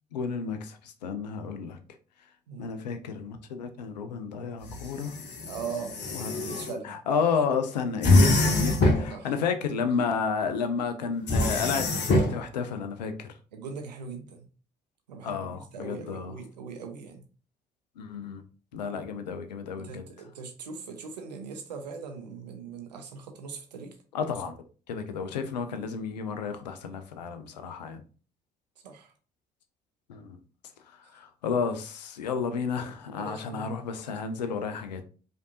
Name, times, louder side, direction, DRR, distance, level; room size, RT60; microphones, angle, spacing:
voice 1, 0.1-1.8 2.6-5.2 6.1-6.4 6.6-13.3 15.2-16.3 18.0-18.4 18.7-20.0 24.1-24.6 24.9-28.0 30.1-30.4 31.1-35.0, left 5 dB, 85° left, 0.5 m, -31 dB
sound 1, 4.6-6.7 8.0-9.1 11.3-12.4, left 2 dB, 55° left, 1.0 m, -24 dB
voice 2, 5.5-7.0 9.1-9.3 13.5-14.5 15.1-17.2 19.8-24.0 28.8-29.1 33.2-33.7, right 5 dB, 85° right, 0.6 m, -40 dB
5.0 x 2.6 x 2.7 m
figure-of-eight pair, 45°, 21 cm